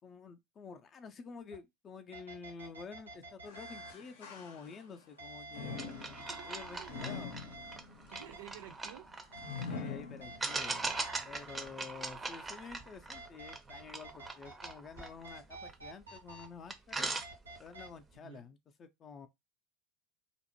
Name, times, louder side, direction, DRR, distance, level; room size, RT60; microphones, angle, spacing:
voice 1, 0.0-7.4 9.7-10.9 11.2-17.1 17.6-19.3, left 5 dB, 30° left, 0.4 m, -49 dB
sound 1, 1.5-1.6 2.1-3.9 5.2-7.8 8.1-8.4 9.3-9.8 10.2-11.6 13.1-14.7 15.0-16.5 17.2-17.9, right 2 dB, 90° right, 0.9 m, -49 dB
sound 2, 3.5-5.0 5.5-10.8 11.3-11.4 12.2-12.3, left 5 dB, 65° left, 0.6 m, -45 dB
sound 3, 5.8-9.7 10.4-16.0 16.4-16.5 16.7-17.8, right 3 dB, 15° right, 0.5 m, -41 dB
voice 2, 6.3-7.2 8.1-9.1 18.1-18.4, right 10 dB, 65° right, 0.5 m, -52 dB
2.5 x 2.0 x 2.9 m
figure-of-eight pair, 80°, 0 cm